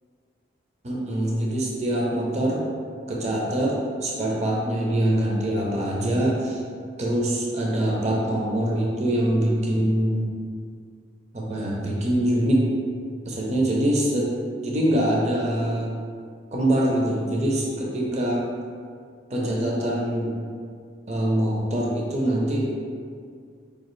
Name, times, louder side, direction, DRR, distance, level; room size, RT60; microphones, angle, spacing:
voice 1, 0.8-2.6 3.1-6.6 7.0-10.3 11.3-12.7 13.3-14.3 14.6-16.0 16.5-18.4 19.3-20.4 21.1-22.7, right 1 dB, 35° right, -3 dB, 0.5 m, -24 dB
5.0 x 2.4 x 3.1 m, 2.1 s
head